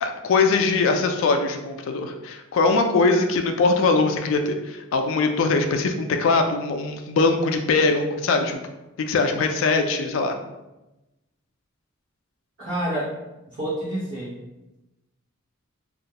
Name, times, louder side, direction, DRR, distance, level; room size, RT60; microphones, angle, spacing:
voice 1, 0.0-8.6 9.1-10.4, left 3 dB, 70° left, 5 dB, 0.3 m, -21 dB
voice 2, 12.6-13.1 13.5-14.3, right 1 dB, 60° right, -11 dB, 0.8 m, -28 dB
2.3 x 2.1 x 2.8 m, 0.99 s
head